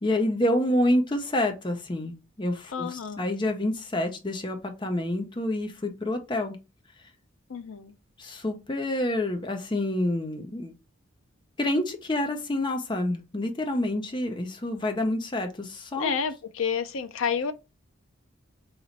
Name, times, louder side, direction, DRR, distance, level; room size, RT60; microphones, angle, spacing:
voice 1, 0.0-6.6 8.2-10.7 11.6-16.1, left 1 dB, 20° left, 0.6 m, -28 dB
voice 2, 2.7-3.3 7.5-7.9 15.9-17.5, left 6 dB, 75° left, 0.5 m, -30 dB
3.0 x 3.0 x 3.9 m
head